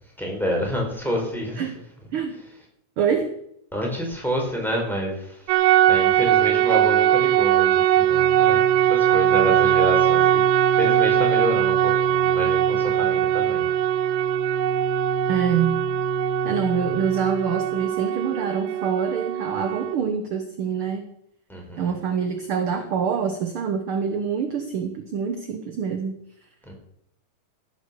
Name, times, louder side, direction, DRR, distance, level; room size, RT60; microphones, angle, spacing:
voice 1, 0.2-1.6 3.7-5.4 5.9-10.5 10.7-13.6 21.5-21.9 26.7-26.8, equal, ahead, -1 dB, 4.1 m, -28 dB
voice 2, 3.0-3.4 15.3-15.8 16.4-21.1 21.8-26.2, right 7 dB, 60° right, 7 dB, 1.6 m, -26 dB
sound 1, 5.5-19.9, right 12 dB, 90° right, 2.2 m, -20 dB
sound 2, 8.1-17.9, left 7 dB, 80° left, 2.7 m, -34 dB
15.5 x 8.2 x 6.9 m, 0.72 s
omnidirectional pair, 3.5 m